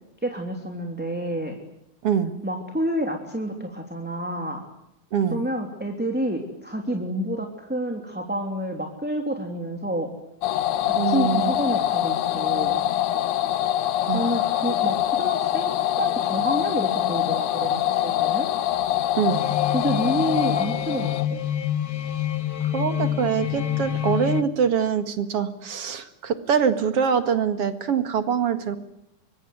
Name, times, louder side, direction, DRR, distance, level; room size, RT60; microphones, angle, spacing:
voice 1, 0.2-1.6 2.4-4.7 5.3-10.1 10.8-12.8 14.1-15.7 16.0-18.5 19.7-21.4, right 1 dB, 5° right, 3 dB, 3.0 m, -29 dB
voice 2, 2.0-2.3 5.1-5.4 11.0-11.5 14.1-14.4 19.1-19.5 22.7-28.8, right 7 dB, 50° right, 10 dB, 2.6 m, -24 dB
sound 1, 10.4-21.3, left 12 dB, 80° left, 2.7 m, -24 dB
sound 2, 19.3-24.4, left 10 dB, 50° left, 2.0 m, -27 dB
24.5 x 23.0 x 9.4 m, 0.85 s
omnidirectional pair, 3.6 m